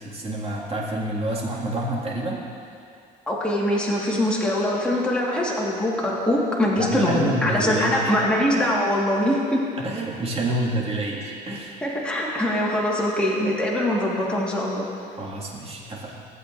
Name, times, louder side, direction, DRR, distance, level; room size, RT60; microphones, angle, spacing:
voice 1, 0.0-2.4 6.8-8.1 9.8-11.8 15.2-16.3, right 1 dB, 35° right, -3 dB, 1.8 m, -28 dB
voice 2, 3.3-9.6 11.8-14.8, left 1 dB, 5° left, -5 dB, 1.5 m, -23 dB
15.5 x 8.1 x 2.5 m, 2.4 s
cardioid pair, 110°, 17 cm